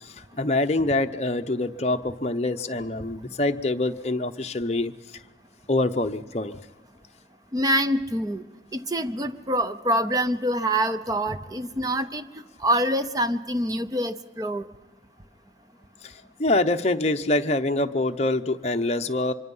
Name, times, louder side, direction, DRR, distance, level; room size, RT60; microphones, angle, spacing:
voice 1, 0.0-4.9 5.7-6.6 16.0-16.1 16.4-19.3, left 2 dB, 35° left, 6 dB, 0.8 m, -25 dB
voice 2, 7.5-8.4 8.7-12.3 12.6-14.6, right 1 dB, 20° right, 11 dB, 0.8 m, -25 dB
25.0 x 24.0 x 5.5 m, 1.2 s
head